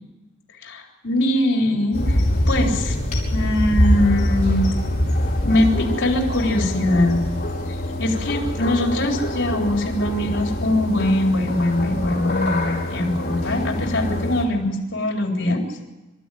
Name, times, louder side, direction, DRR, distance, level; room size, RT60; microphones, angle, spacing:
voice 1, 0.6-2.2 2.5-3.0 3.3-4.6 5.4-7.3 8.0-15.6, left 1 dB, 65° left, 1 dB, 3.8 m, -22 dB
sound 1, 1.9-14.4, left 1 dB, 40° left, 5.1 m, -24 dB
26.5 x 13.5 x 9.3 m, 1.1 s
head